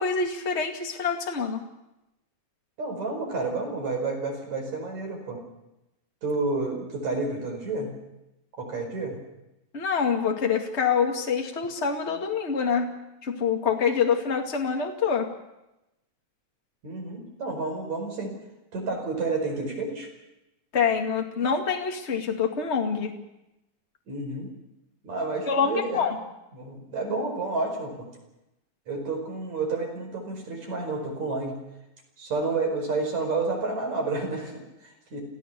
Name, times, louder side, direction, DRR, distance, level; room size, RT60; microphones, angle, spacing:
voice 1, 0.0-1.6 9.7-12.9 13.2-15.3 20.7-23.1 25.5-26.2, left 6 dB, 25° left, 3 dB, 1.8 m, -26 dB
voice 2, 2.8-5.4 6.2-7.9 8.6-9.2 16.8-18.3 18.7-20.1 24.1-24.5 25.0-26.0 26.5-28.1 28.9-31.6 32.2-35.2, right 3 dB, 50° right, 2 dB, 6.1 m, -30 dB
28.5 x 15.5 x 6.9 m, 0.91 s
omnidirectional pair, 4.2 m